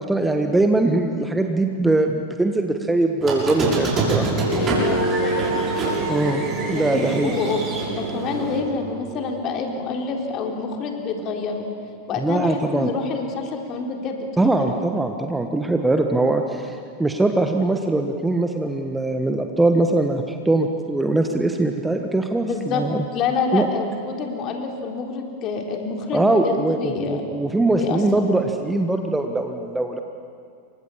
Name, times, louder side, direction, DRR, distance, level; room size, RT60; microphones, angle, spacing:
voice 1, 0.0-4.3 6.1-6.4 6.7-7.3 12.2-12.9 14.4-23.0 23.5-23.7 26.1-30.0, right 2 dB, 5° right, 5 dB, 1.5 m, -21 dB
Squeak, 3.2-8.6, right 3 dB, 25° right, 7.1 m, -25 dB
sound 1, 4.3-9.1, right 1 dB, 80° right, 4.8 m, -29 dB
voice 2, 4.5-5.6 6.7-7.6 7.9-11.6 12.1-14.7 22.4-22.8 23.1-27.2 27.7-28.2, left 4 dB, 35° left, 3 dB, 4.0 m, -27 dB
29.0 x 24.5 x 7.4 m, 2.4 s
figure-of-eight pair, 90°, 0 cm